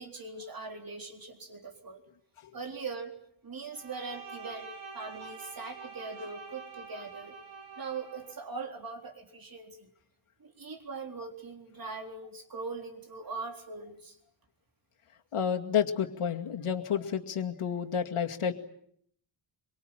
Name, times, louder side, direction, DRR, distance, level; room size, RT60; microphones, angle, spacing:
voice 1, 0.0-2.0 2.5-3.1 3.4-7.3 7.8-9.9 10.4-14.2, right 4 dB, 45° right, 4 dB, 3.9 m, -41 dB
Bowed string instrument, 3.7-8.4, right 5 dB, 70° right, 4.5 m, -46 dB
voice 2, 15.3-18.5, left 8 dB, 80° left, 4 dB, 2.4 m, -30 dB
25.0 x 24.0 x 9.0 m, 0.68 s
wide cardioid pair, 165°, 50 cm